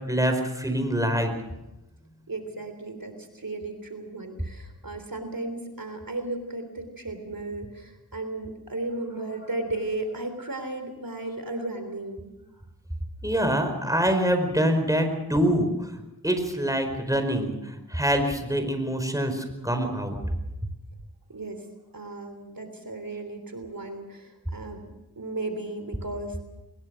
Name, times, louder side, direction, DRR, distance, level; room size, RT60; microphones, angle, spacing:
voice 1, 0.1-1.3 13.2-20.2, equal, 10° right, 6 dB, 4.8 m, -25 dB
voice 2, 2.3-12.3 21.3-21.7 21.9-24.8 25.2-26.4, right 2 dB, 60° right, 7 dB, 3.4 m, -35 dB
22.5 x 21.0 x 6.4 m, 0.97 s
wide cardioid pair, 45°, 38 cm